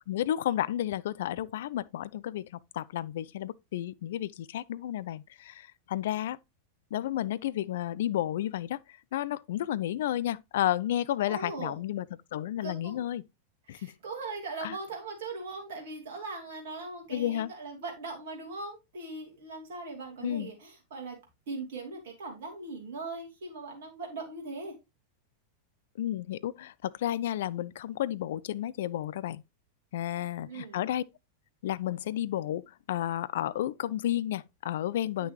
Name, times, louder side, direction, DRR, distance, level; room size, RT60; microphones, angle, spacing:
voice 1, 0.0-6.4 6.9-12.1 12.3-13.2 13.7-13.9 14.6-14.7 17.1-17.5 20.2-20.5 26.0-29.4 29.9-31.0 31.6-35.3, left 12 dB, 55° left, 0.3 m, -32 dB
voice 2, 11.2-11.8 12.4-13.0 13.7-21.2 21.5-24.8 30.1-30.8 35.2-35.3, right 3 dB, 55° right, 2.9 m, -40 dB
9.0 x 6.0 x 3.0 m
figure-of-eight pair, 90°, 0 cm